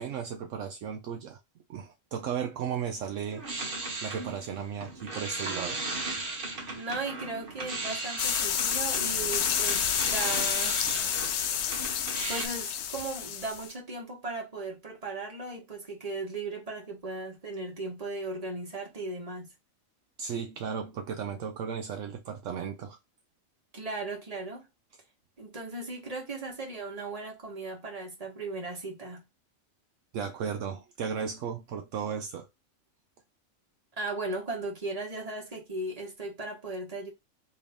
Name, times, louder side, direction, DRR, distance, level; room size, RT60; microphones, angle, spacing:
voice 1, 0.0-1.4 1.7-3.5 4.0-5.8 20.2-23.0 30.1-32.5, right 7 dB, 75° right, 0.9 m, -35 dB
sound 1, 3.1-12.5, right 2 dB, 45° right, 1.1 m, -37 dB
voice 2, 6.7-10.8 12.3-19.5 23.7-24.7 25.4-29.2 34.0-37.1, right 2 dB, 30° right, 1.4 m, -37 dB
sound 2, 8.2-13.7, left 8 dB, 65° left, 0.7 m, -29 dB
3.4 x 2.8 x 3.4 m
omnidirectional pair, 1.4 m